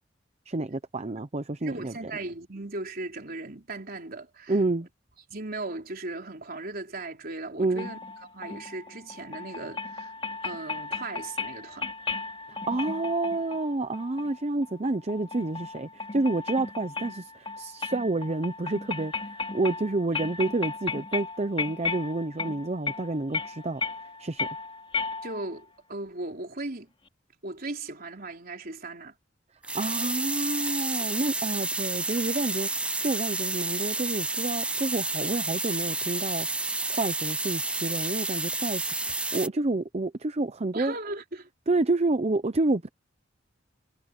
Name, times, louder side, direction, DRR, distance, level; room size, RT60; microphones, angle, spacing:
voice 1, 0.5-1.9 4.5-4.9 7.6-7.9 12.5-19.1 19.5-23.8 24.2-24.5 29.7-36.5 36.9-38.9 39.3-40.9 41.7-42.9, right 2 dB, 35° right, 0.7 m, -29 dB
voice 2, 1.6-4.6 5.3-8.0 8.3-10.1 10.4-11.9 25.2-26.9 27.4-29.1 40.7-41.5, right 2 dB, 50° right, 3.9 m, -37 dB
sound 1, 7.8-25.6, left 4 dB, 30° left, 3.3 m, -36 dB
sound 2, 29.6-39.5, right 2 dB, 5° right, 0.4 m, -30 dB
head